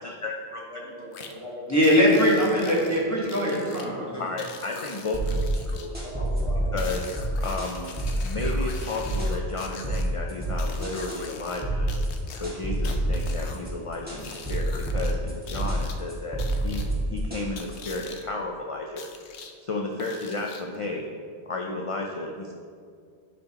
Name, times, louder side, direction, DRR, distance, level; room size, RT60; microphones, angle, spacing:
voice 1, 0.0-0.6 4.2-5.9 6.7-11.9 12.4-19.1 19.6-21.1 21.5-22.5, left 2 dB, 45° left, 1 dB, 0.4 m, -33 dB
voice 2, 0.7-1.7 5.8-7.3, equal, 45° right, -7 dB, 2.1 m, -41 dB
sound 1, 1.1-1.3 1.8-3.9 4.4-5.9 6.8-10.0 10.6-11.6 11.9-13.6 14.2-15.1 15.5-16.0 16.4-16.9 17.6-18.2 19.0-19.5 20.0-20.8, left 5 dB, 90° left, 0.9 m, -42 dB
voice 3, 1.7-4.2, equal, 15° left, -5 dB, 1.3 m, -21 dB
sound 2, 5.1-18.0, right 1 dB, 10° right, 1.9 m, -28 dB
11.5 x 5.2 x 2.9 m, 2.2 s
omnidirectional pair, 1.1 m